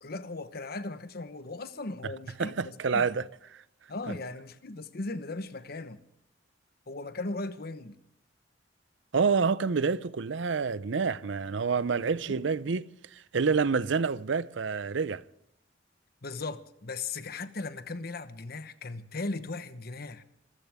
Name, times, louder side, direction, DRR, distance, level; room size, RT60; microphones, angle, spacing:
voice 1, 0.0-3.1 3.9-6.0 6.9-8.0 12.3-12.4 16.2-20.2, left 3 dB, 55° left, 1.1 m, -37 dB
voice 2, 2.4-3.3 9.1-15.2, right 5 dB, 75° right, 0.6 m, -28 dB
25.5 x 14.5 x 3.6 m
head